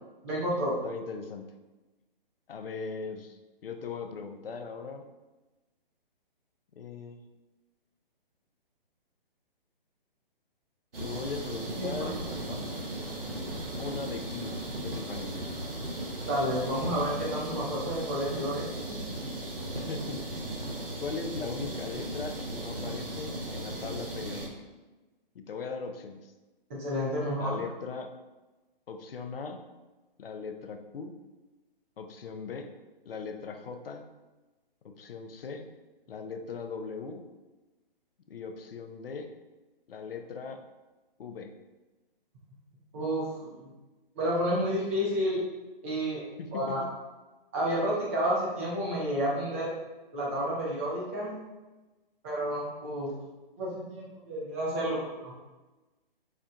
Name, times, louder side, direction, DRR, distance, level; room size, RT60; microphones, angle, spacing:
voice 1, 0.2-0.7 11.8-12.1 16.2-19.0 26.7-27.6 42.9-43.7 44.2-45.4 45.8-46.2 46.5-46.8 47.5-49.7 50.1-51.3 52.2-53.1 53.6-55.4, equal, 15° right, -6 dB, 0.4 m, -30 dB
voice 2, 0.8-1.5 2.5-5.0 6.8-7.2 11.0-12.2 13.8-15.4 19.7-20.5 21.0-24.5 25.3-26.3 27.4-28.1 28.9-29.6 30.2-31.1 32.0-32.7 33.1-34.1 34.8-35.7 36.1-37.2 38.3-39.3 39.9-40.6 41.2-41.5 46.4-46.8, left 5 dB, 75° left, 6 dB, 0.5 m, -39 dB
sound 1, 10.9-24.5, right 1 dB, 75° right, 0.8 m, -37 dB
4.2 x 2.1 x 2.4 m, 1.1 s
figure-of-eight pair, 135°, 29 cm